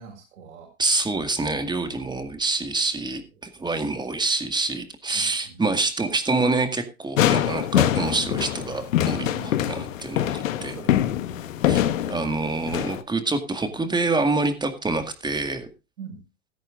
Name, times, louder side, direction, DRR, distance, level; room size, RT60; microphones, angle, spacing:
voice 1, 0.0-0.7 5.1-5.6 9.0-9.9 10.6-11.3 16.0-16.2, right 4 dB, 70° right, -3 dB, 5.9 m, -42 dB
voice 2, 0.8-9.3 9.7-10.8 11.7-15.7, right 3 dB, 10° right, 8 dB, 2.0 m, -26 dB
sound 1, 7.2-13.0, left 11 dB, 70° left, 1.3 m, -24 dB
17.0 x 13.5 x 2.5 m, 0.28 s
hypercardioid pair, 100°, 41 cm